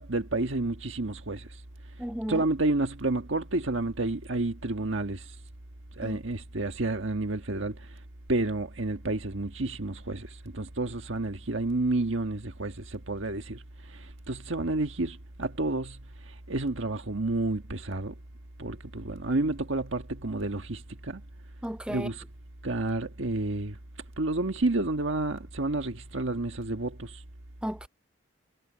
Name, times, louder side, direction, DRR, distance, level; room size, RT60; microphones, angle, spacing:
voice 1, 0.0-1.6 2.3-5.3 6.0-7.9 8.3-16.0 16.3-18.1 18.6-21.2 21.9-22.2 22.6-23.8 24.2-27.2, right 2 dB, 75° right, 1.5 m, -30 dB
voice 2, 2.0-2.4 6.0-6.2 21.6-22.1 27.6-27.9, equal, 5° right, 0.6 m, -34 dB
head